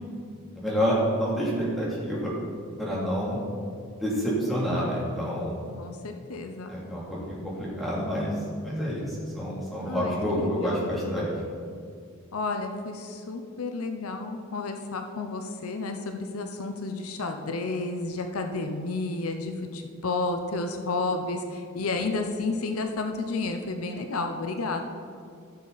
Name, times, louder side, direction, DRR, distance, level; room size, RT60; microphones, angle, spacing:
voice 1, 0.5-2.3 2.8-3.4 3.9-5.6 6.7-8.3 8.6-11.3, equal, ahead, -8 dB, 2.8 m, -28 dB
voice 2, 5.8-6.7 9.9-10.9 12.3-24.8, left 3 dB, 85° left, 5 dB, 0.8 m, -31 dB
14.5 x 6.7 x 4.1 m, 2.3 s
head